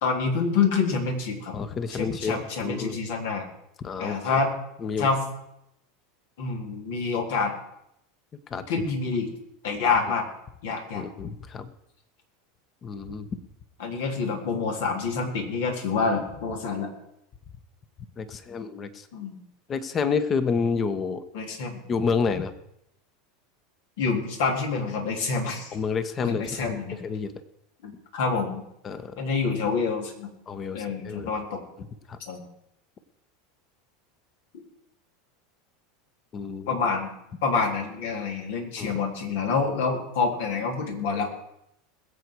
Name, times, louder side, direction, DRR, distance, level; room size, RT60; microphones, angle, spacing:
voice 1, 0.0-1.5 1.9-3.4 4.0-4.5 5.0-5.2 6.4-7.5 8.7-9.3 9.6-10.3 10.6-11.0 13.8-16.9 19.1-19.4 21.3-21.8 24.0-25.8 26.2-27.0 27.8-28.6 29.2-30.3 30.7-31.6 32.3-32.4 36.7-37.1 37.4-41.3, left 4 dB, 70° left, 1 dB, 3.7 m, -27 dB
voice 2, 1.5-3.0 3.8-4.2 4.8-5.1 8.5-8.6 10.9-11.7 12.8-13.3 18.2-19.1 19.7-21.2 21.9-22.5 25.7-27.3 28.8-29.1 30.5-31.3 32.1-32.2 36.3-36.7 38.8-38.9, left 5 dB, 30° left, 11 dB, 1.5 m, -29 dB
21.5 x 8.2 x 4.9 m, 0.79 s
hypercardioid pair, 85°, 0 cm